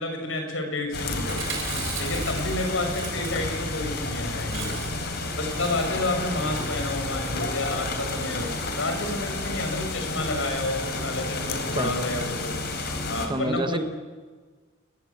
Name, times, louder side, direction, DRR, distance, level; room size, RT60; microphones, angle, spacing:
voice 1, 0.0-1.4 2.0-4.8 5.3-12.6 13.1-13.8, left 2 dB, 90° left, 4 dB, 6.8 m, -30 dB
sound 1, 0.9-13.3, left 2 dB, 55° left, 3.9 m, -31 dB
Chewing mastication, 1.1-3.8 4.1-4.2 4.4-5.1 5.4-6.1 6.5-6.8 7.5-7.8 8.4-8.7 9.0-9.1 9.3-9.4, right 7 dB, 85° right, 7.2 m, -38 dB
voice 2, 13.3-13.8, right 1 dB, 25° right, 11 dB, 1.1 m, -27 dB
28.5 x 22.5 x 8.5 m, 1.5 s
head